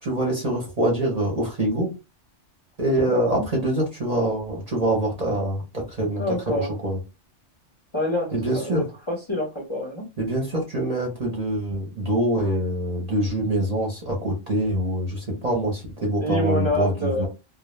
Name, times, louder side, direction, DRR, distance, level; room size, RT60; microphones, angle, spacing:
voice 1, 0.0-1.9 2.8-7.0 8.3-8.9 10.2-17.3, right 1 dB, 35° right, -2 dB, 0.8 m, -25 dB
voice 2, 3.1-3.4 6.2-6.7 7.9-8.7 9.1-10.1 16.2-17.3, left 1 dB, 30° left, -3 dB, 0.7 m, -26 dB
2.3 x 2.0 x 3.1 m, 0.27 s
omnidirectional pair, 1.2 m